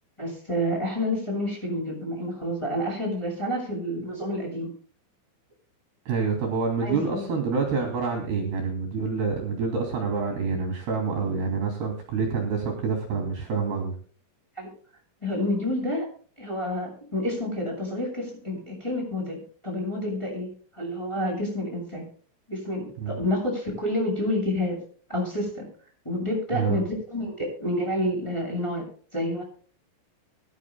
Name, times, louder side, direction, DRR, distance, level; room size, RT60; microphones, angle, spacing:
voice 1, 0.2-4.7 6.8-7.4 14.6-14.7 15.2-16.1 16.4-19.4 19.6-22.1 22.5-24.8 25.1-25.6 26.0-28.9 29.1-29.4, left 1 dB, 5° left, -2 dB, 7.3 m, -29 dB
voice 2, 6.1-13.9 23.0-23.1 26.5-26.8, right 5 dB, 55° right, 3 dB, 4.4 m, -27 dB
24.0 x 12.0 x 2.2 m, 0.43 s
omnidirectional pair, 5.9 m